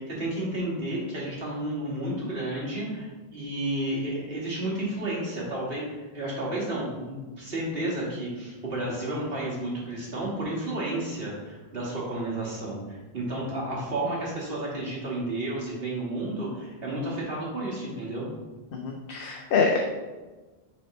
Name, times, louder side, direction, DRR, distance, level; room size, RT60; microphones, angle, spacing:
voice 1, 0.1-18.3, right 1 dB, 65° right, -5 dB, 2.1 m, -32 dB
voice 2, 18.7-19.8, left 5 dB, 65° left, 2 dB, 0.8 m, -25 dB
6.2 x 4.1 x 4.2 m, 1.3 s
omnidirectional pair, 1.1 m